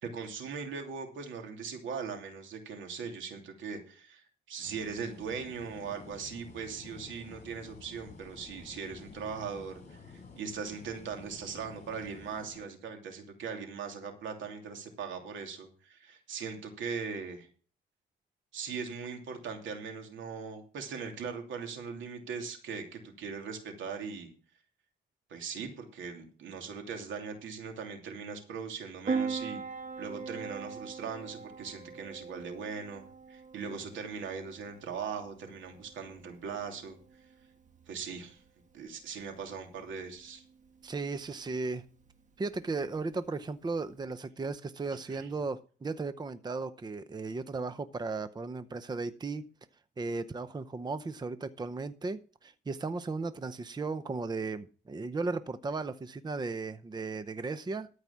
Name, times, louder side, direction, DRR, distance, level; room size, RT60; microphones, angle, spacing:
voice 1, 0.0-17.5 18.5-24.3 25.3-29.6 30.0-33.0 33.3-37.0 37.9-38.4 38.7-40.4 45.1-45.3, right 6 dB, 75° right, 4 dB, 2.9 m, -40 dB
sound 1, 4.6-12.6, left 4 dB, 35° left, 4.6 m, -51 dB
Piano, 29.1-44.0, right 5 dB, 40° right, 1.7 m, -42 dB
voice 2, 40.8-41.8 42.4-49.5 50.0-57.9, right 3 dB, 20° right, 13 dB, 0.7 m, -36 dB
13.5 x 4.8 x 7.2 m, 0.39 s
cardioid pair, 90°, 20 cm